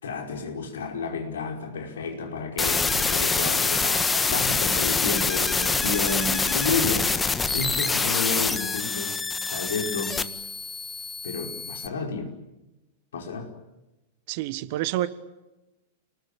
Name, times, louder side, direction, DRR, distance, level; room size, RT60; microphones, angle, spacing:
voice 1, 0.0-7.1 7.5-9.2 9.5-10.2 11.2-12.3 13.1-13.5, left 4 dB, 65° left, 5.2 m, -31 dB
sound 1, 2.6-11.9, left 4 dB, 10° left, 1.6 m, -25 dB
voice 2, 14.3-15.1, right 15 dB, 45° right, 1.6 m, -28 dB
30.0 x 20.0 x 8.8 m
figure-of-eight pair, 95°, 0 cm